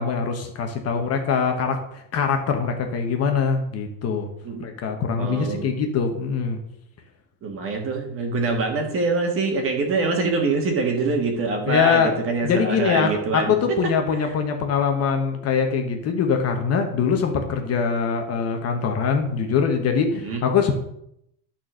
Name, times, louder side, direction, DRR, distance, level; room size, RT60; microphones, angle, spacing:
voice 1, 0.0-4.3 4.6-6.6 11.7-12.1 12.4-20.7, left 6 dB, 35° left, 4 dB, 1.1 m, -23 dB
voice 2, 5.2-5.7 7.4-13.6 13.8-14.3 20.1-20.4, right 3 dB, 30° right, 3 dB, 1.8 m, -25 dB
12.0 x 4.4 x 6.3 m, 0.77 s
cardioid pair, 170°, 42 cm